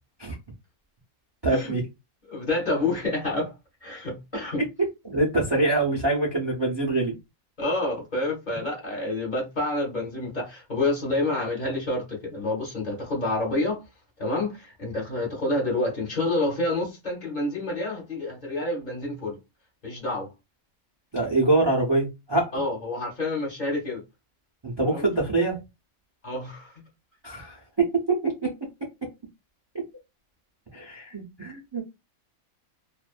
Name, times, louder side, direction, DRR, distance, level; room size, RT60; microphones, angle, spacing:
voice 1, 1.4-1.8 4.8-7.1 21.1-22.5 24.6-25.6 27.2-28.5 30.7-31.8, right 2 dB, 40° right, 0.4 m, -24 dB
voice 2, 2.3-3.5 3.8-4.6 7.6-13.8 14.2-19.4 19.8-20.3 22.5-24.0 24.8-25.1 26.2-26.7, left 2 dB, 35° left, 0.9 m, -28 dB
2.5 x 2.2 x 2.4 m
omnidirectional pair, 1.5 m